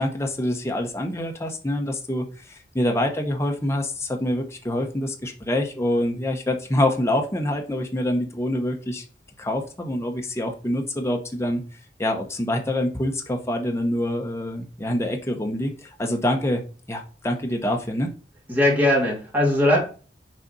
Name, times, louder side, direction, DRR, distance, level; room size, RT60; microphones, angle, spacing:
voice 1, 0.0-9.0 9.4-11.6 12.0-16.6 16.9-18.1, left 1 dB, 15° left, 3 dB, 0.9 m, -26 dB
voice 2, 18.5-19.8, left 1 dB, 10° right, -3 dB, 2.6 m, -19 dB
6.4 x 4.1 x 4.1 m, 0.37 s
head